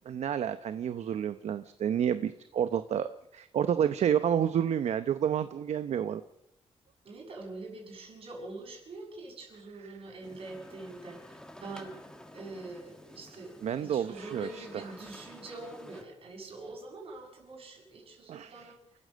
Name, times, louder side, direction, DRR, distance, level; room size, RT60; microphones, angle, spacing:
voice 1, 0.1-6.2 13.6-14.8 18.3-18.7, right 9 dB, 70° right, 11 dB, 0.8 m, -30 dB
voice 2, 7.0-11.9 12.3-18.8, right 2 dB, 55° right, 1 dB, 6.7 m, -44 dB
sound 1, 10.2-16.0, left 1 dB, 5° left, 2.1 m, -51 dB
28.5 x 14.5 x 6.4 m, 0.84 s
cardioid pair, 125°, 12 cm